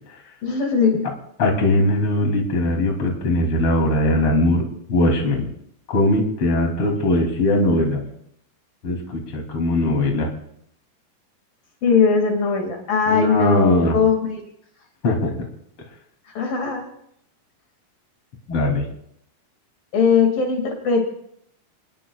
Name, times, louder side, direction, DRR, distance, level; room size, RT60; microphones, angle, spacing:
voice 1, 0.4-1.1 11.8-14.4 16.4-16.8 19.9-21.1, left 5 dB, 70° left, 2 dB, 4.0 m, -19 dB
voice 2, 1.4-5.4 5.9-8.0 8.8-10.3 13.1-13.9 15.0-15.3 18.5-18.8, left 1 dB, 40° left, 1 dB, 3.7 m, -20 dB
30.0 x 20.0 x 2.4 m, 0.73 s
omnidirectional pair, 4.1 m